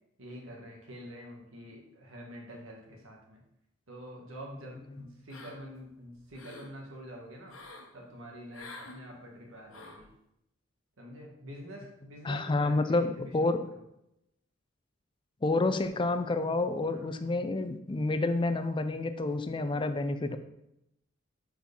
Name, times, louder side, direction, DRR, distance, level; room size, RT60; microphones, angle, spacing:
voice 1, 0.2-3.4 3.9-7.6 7.9-10.1 11.0-13.8 16.9-17.1 19.5-19.8, equal, 80° right, -1 dB, 1.7 m, -47 dB
sound 1, 5.3-5.8 6.2-6.7 7.5-7.9 8.5-9.0 9.7-10.1, left 3 dB, 90° left, 1.0 m, -48 dB
voice 2, 12.2-13.7 15.4-20.4, left 2 dB, 25° left, 10 dB, 0.4 m, -29 dB
4.5 x 4.5 x 5.3 m, 0.82 s
head